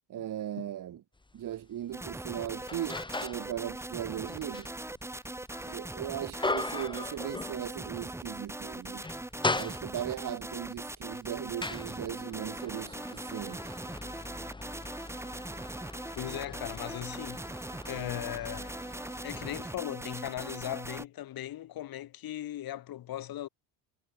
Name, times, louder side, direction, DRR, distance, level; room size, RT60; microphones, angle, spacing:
voice 1, 0.1-1.0 1.3-4.7 5.6-9.0 9.5-13.8, right 11 dB, 40° right, 4.6 m, -38 dB
sound 1, 1.2-1.4 1.9-3.5 3.9-8.0 8.3-8.5 8.9-10.3 11.0-19.6, left 2 dB, 10° left, 7.9 m, -39 dB
sound 2, 1.9-21.1, right 2 dB, 5° right, 2.8 m, -41 dB
voice 2, 16.1-17.5 17.9-18.8 19.2-23.5, left 13 dB, 45° left, 7.4 m, -38 dB
cardioid pair, 155°, 47 cm